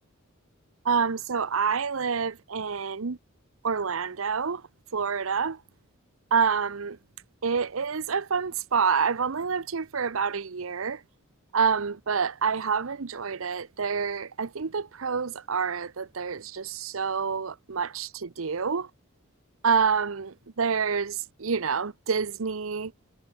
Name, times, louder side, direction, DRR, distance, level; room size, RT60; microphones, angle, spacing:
voice 1, 0.8-3.2 3.6-4.6 4.9-5.6 6.3-7.0 7.4-11.0 11.5-18.9 19.6-22.9, right 6 dB, 75° right, 0.8 m, -27 dB
head